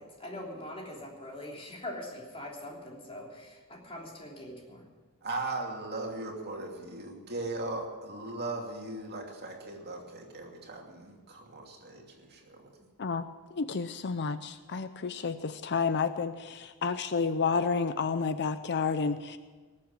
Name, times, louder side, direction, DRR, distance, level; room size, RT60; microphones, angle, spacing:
voice 1, 0.0-4.8, left 1 dB, 25° left, -1 dB, 3.3 m, -42 dB
voice 2, 5.2-12.9, right 2 dB, 50° right, 0 dB, 2.7 m, -38 dB
voice 3, 13.0-19.4, left 5 dB, 50° left, 11 dB, 0.6 m, -30 dB
19.0 x 7.7 x 8.8 m, 1.4 s
head